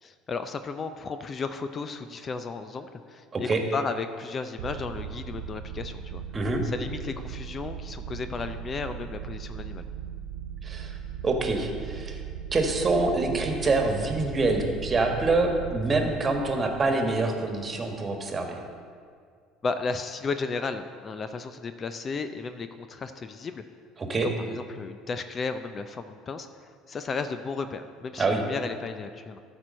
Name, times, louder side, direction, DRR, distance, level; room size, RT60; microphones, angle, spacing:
voice 1, 0.0-6.2 6.6-9.8 19.6-23.6 24.2-29.4, left 4 dB, 35° left, 10 dB, 0.5 m, -34 dB
sound 1, 4.6-17.9, right 8 dB, 70° right, 0.4 m, -38 dB
voice 2, 10.6-11.0 11.2-12.2 12.5-18.6 24.1-24.3 28.2-28.4, right 3 dB, 30° right, 4 dB, 1.5 m, -26 dB
13.5 x 4.5 x 6.4 m, 2.1 s
hypercardioid pair, 65°, 0 cm